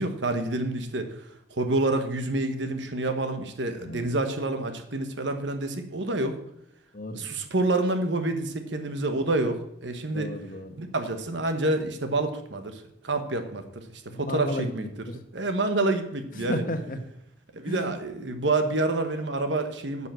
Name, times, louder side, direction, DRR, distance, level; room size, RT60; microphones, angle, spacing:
voice 1, 0.0-6.4 7.1-10.3 10.8-14.9 15.3-16.6 17.5-20.1, right 2 dB, 70° right, 7 dB, 1.2 m, -28 dB
voice 2, 10.1-10.8 14.1-15.2 16.4-17.0 17.6-17.9, left 1 dB, 50° left, 7 dB, 1.2 m, -33 dB
9.4 x 5.7 x 7.7 m, 0.80 s
head